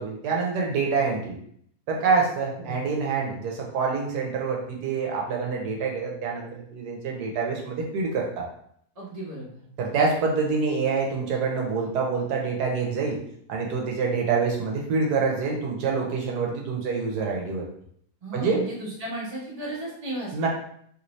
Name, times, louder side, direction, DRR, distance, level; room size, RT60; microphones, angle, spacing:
voice 1, 0.0-1.4 1.9-8.5 9.8-13.2 13.5-17.6 18.3-18.6 20.3-20.5, right 4 dB, 75° right, -1 dB, 1.2 m, -26 dB
voice 2, 9.0-9.6 18.2-20.5, right 2 dB, 25° right, -6 dB, 1.0 m, -35 dB
3.0 x 2.6 x 3.0 m, 0.66 s
omnidirectional pair, 1.8 m